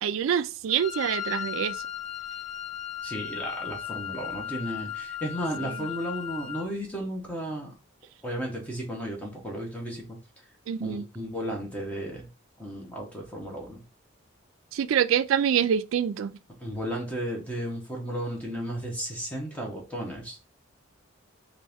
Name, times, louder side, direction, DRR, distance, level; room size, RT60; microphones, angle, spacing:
voice 1, 0.0-1.8 10.7-11.1 14.7-16.3, right 8 dB, 75° right, 0.3 m, -25 dB
Wind instrument woodwind instrument, 0.7-6.7, left 10 dB, 35° left, 0.5 m, -36 dB
voice 2, 3.0-7.7 8.2-10.2 10.8-12.3 12.6-13.8 16.6-20.4, equal, 5° left, 0.9 m, -34 dB
4.2 x 2.6 x 3.4 m
head